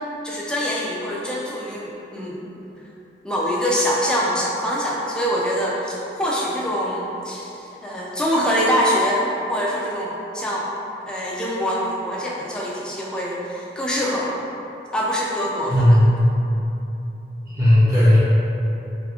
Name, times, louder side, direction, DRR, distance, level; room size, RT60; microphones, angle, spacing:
voice 1, 0.2-2.5 3.2-10.7 11.1-14.4 14.9-16.1, equal, 5° left, -5 dB, 0.4 m, -24 dB
voice 2, 15.7-16.1 17.6-18.2, left 1 dB, 20° right, -12 dB, 0.8 m, -14 dB
3.4 x 2.4 x 3.5 m, 3.0 s
head